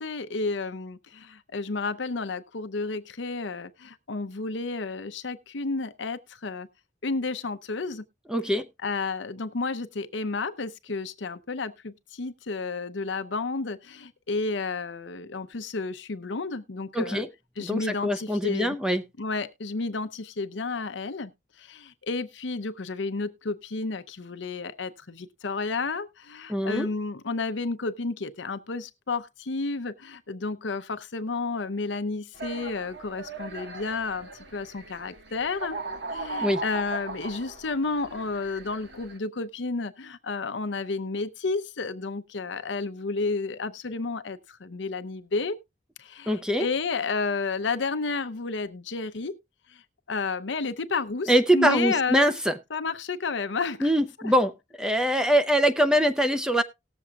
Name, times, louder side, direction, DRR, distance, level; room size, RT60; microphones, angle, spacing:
voice 1, 0.0-6.7 7.0-8.0 8.5-17.2 17.6-18.8 19.2-21.3 21.6-35.8 36.1-45.6 46.0-49.4 49.7-49.8 50.1-52.3 52.7-53.9 54.2-54.3, left 3 dB, 75° left, 0.7 m, -31 dB
voice 2, 8.3-8.6 16.9-17.3 17.6-19.0 26.5-26.9 36.4-36.6 46.3-46.7 51.3-52.5 53.8-54.5 54.8-56.6, equal, 5° right, 0.6 m, -23 dB
sound 1, 32.3-39.2, right 3 dB, 65° right, 1.5 m, -38 dB
19.0 x 7.2 x 2.4 m
head